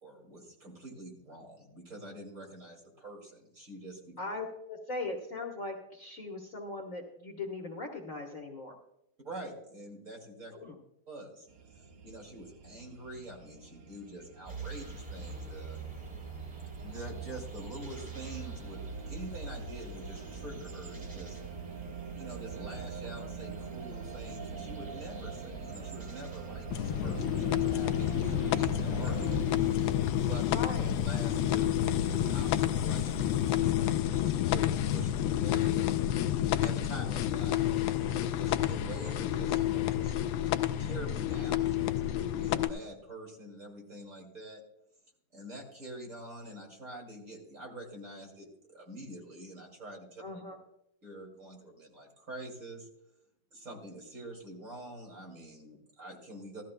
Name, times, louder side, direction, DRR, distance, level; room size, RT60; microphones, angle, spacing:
voice 1, 0.0-4.1 9.2-10.5 11.1-11.5 12.0-15.8 16.8-18.8 19.1-21.4 22.1-29.7 30.2-30.5 31.0-36.0 36.6-40.2 40.8-44.6 45.3-50.2 51.0-52.9 53.5-56.6, right 1 dB, 35° right, -1 dB, 2.8 m, -46 dB
voice 2, 4.2-8.7 10.5-10.8 30.5-31.0 50.2-50.6, left 2 dB, 45° left, 0 dB, 1.4 m, -39 dB
sound 1, 11.5-29.4, right 6 dB, 80° right, 1.9 m, -45 dB
sound 2, 14.5-33.6, right 4 dB, 20° right, 3.0 m, -44 dB
sound 3, 26.7-42.7, left 12 dB, 75° left, 1.2 m, -29 dB
16.5 x 13.0 x 2.2 m, 0.81 s
omnidirectional pair, 2.3 m